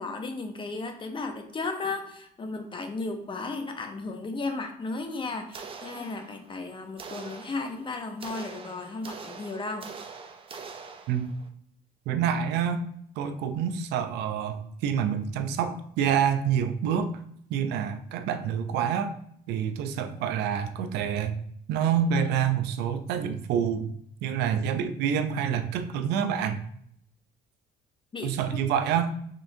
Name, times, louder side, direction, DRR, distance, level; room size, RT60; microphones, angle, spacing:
voice 1, 0.0-9.9 28.1-28.7, left 3 dB, 30° left, 6 dB, 0.7 m, -35 dB
sound 1, 5.5-6.6 7.0-11.5, right 5 dB, 30° right, 0.5 m, -44 dB
voice 2, 12.1-12.9 13.2-17.1 17.5-19.1 19.5-21.3 21.7-23.9 24.2-26.6 28.2-29.1, right 8 dB, 85° right, 8 dB, 0.5 m, -27 dB
5.2 x 3.4 x 2.7 m, 0.70 s
cardioid pair, 110°, 17 cm